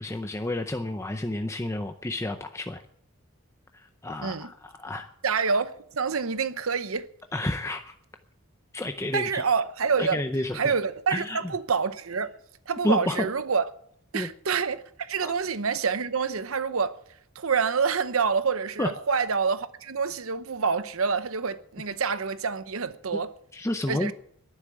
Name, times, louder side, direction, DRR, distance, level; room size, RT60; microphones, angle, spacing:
voice 1, 0.0-2.8 3.7-5.1 7.3-7.9 8.7-9.4 10.0-10.7 11.1-11.4 12.8-13.3 14.1-14.3 15.2-15.3 18.8-18.9 23.5-24.1, left 1 dB, 15° left, 0.6 m, -30 dB
voice 2, 5.2-7.1 9.1-10.2 10.5-12.3 12.7-13.7 14.1-17.0 17.4-23.3 23.9-24.1, right 5 dB, 80° right, 0.8 m, -27 dB
11.0 x 9.8 x 8.3 m
head